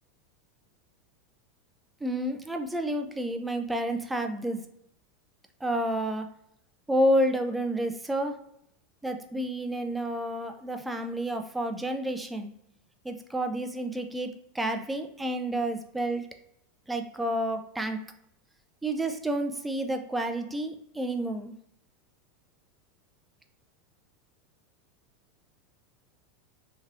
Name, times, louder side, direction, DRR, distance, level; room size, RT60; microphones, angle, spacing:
voice 1, 2.0-4.6 5.6-6.3 6.9-8.5 9.0-12.5 13.0-16.3 16.9-18.0 18.8-21.6, right 1 dB, 5° right, 6 dB, 0.4 m, -30 dB
3.0 x 2.8 x 2.5 m, 0.74 s
supercardioid pair, 120°, 0 cm